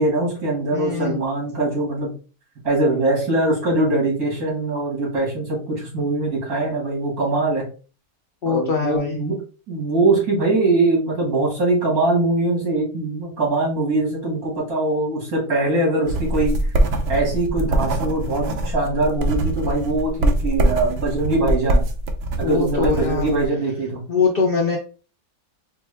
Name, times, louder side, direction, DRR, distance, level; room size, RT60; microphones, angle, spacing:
voice 1, 0.0-2.1 2.6-7.6 8.5-9.4 9.7-16.5 17.1-21.8 22.4-24.0, right 2 dB, 80° right, -3 dB, 2.4 m, -22 dB
voice 2, 0.7-1.2 8.4-9.2 22.4-23.2 24.1-24.8, left 5 dB, 65° left, 1 dB, 0.5 m, -22 dB
sound 1, 16.0-23.5, right 1 dB, 60° right, 0.7 m, -23 dB
4.5 x 2.2 x 3.2 m, 0.37 s
omnidirectional pair, 1.6 m